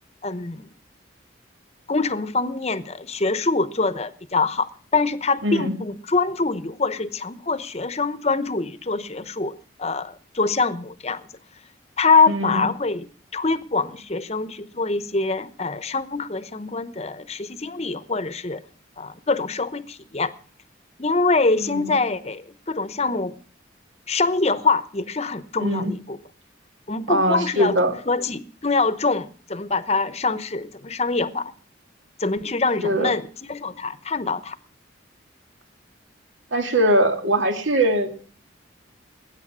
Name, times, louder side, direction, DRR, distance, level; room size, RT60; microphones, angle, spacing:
voice 1, 0.2-0.6 1.9-9.5 9.8-11.2 12.0-13.1 13.3-18.6 19.0-20.3 21.0-23.3 24.1-26.2 26.9-31.5 32.2-34.6, left 3 dB, 35° left, 0.9 m, -24 dB
voice 2, 5.4-5.7 12.3-12.7 21.6-22.0 25.6-25.9 27.1-28.0 32.8-33.1 36.5-38.1, right 1 dB, 80° right, 2.4 m, -21 dB
20.0 x 9.3 x 6.2 m
head